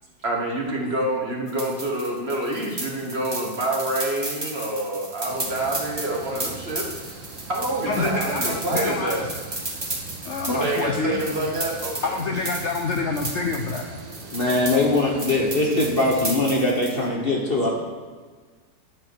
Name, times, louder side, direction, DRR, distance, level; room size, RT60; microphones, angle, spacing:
voice 1, 0.2-6.8 7.5-9.2 10.5-12.1 15.3-15.4, right 1 dB, 40° right, 1.3 m, -27 dB
sound 1, 1.5-17.0, right 2 dB, 15° right, 1.1 m, -33 dB
sound 2, 5.3-16.3, right 4 dB, 80° right, 1.9 m, -41 dB
voice 2, 7.9-9.3 10.2-11.2 12.0-13.9, left 3 dB, 75° left, 0.6 m, -27 dB
voice 3, 14.3-17.7, left 2 dB, 40° left, 1.0 m, -21 dB
10.0 x 5.1 x 6.1 m
omnidirectional pair, 2.0 m